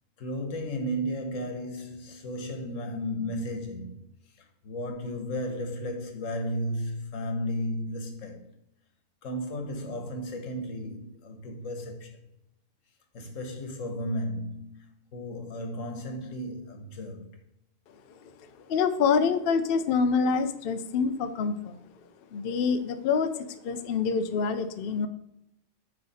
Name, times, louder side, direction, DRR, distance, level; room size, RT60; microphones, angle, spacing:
voice 1, 0.2-4.0 4.6-8.5 9.2-12.2 13.1-17.3, equal, 90° left, 1.4 m, -34 dB
voice 2, 18.1-21.8 22.3-25.1, left 5 dB, 60° left, 0.7 m, -27 dB
10.0 x 3.4 x 4.1 m
omnidirectional pair, 1.3 m